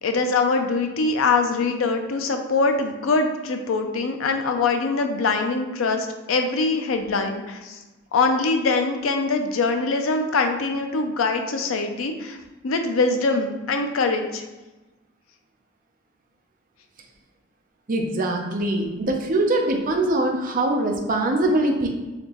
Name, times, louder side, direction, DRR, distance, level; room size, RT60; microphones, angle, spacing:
voice 1, 0.0-7.8 8.1-12.4 12.6-14.4, left 3 dB, 80° left, 5 dB, 0.5 m, -23 dB
voice 2, 17.9-21.9, right 2 dB, 40° right, 2 dB, 0.5 m, -22 dB
4.2 x 2.9 x 2.9 m, 1.1 s
head